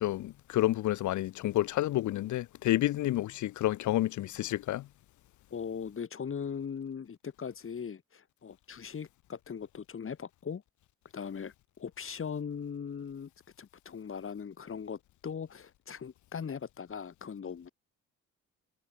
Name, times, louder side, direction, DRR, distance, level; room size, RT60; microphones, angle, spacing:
voice 1, 0.0-4.9, left 15 dB, 75° left, 0.8 m, -29 dB
voice 2, 5.5-10.6 11.1-13.3 13.6-17.7, left 7 dB, 45° left, 4.4 m, -39 dB
cardioid pair, 90°, 30 cm